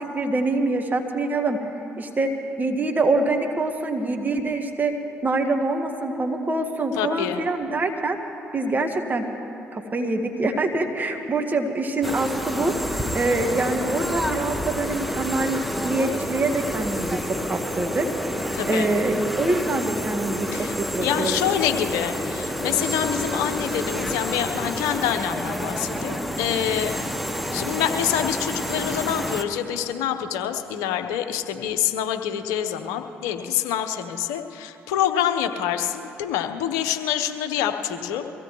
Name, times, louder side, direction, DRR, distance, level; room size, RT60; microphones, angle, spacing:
voice 1, 0.0-1.6 2.0-2.3 2.6-4.9 5.2-8.2 8.5-9.3 9.7-21.4, right 2 dB, 30° right, 3 dB, 1.6 m, -25 dB
voice 2, 7.0-7.4 18.5-18.9 20.5-26.9 27.5-38.2, left 10 dB, 75° left, 7 dB, 0.9 m, -26 dB
sound 1, 12.0-29.4, equal, ahead, 1.4 m, -29 dB
23.5 x 16.0 x 3.1 m, 2.8 s
hypercardioid pair, 50°, 6 cm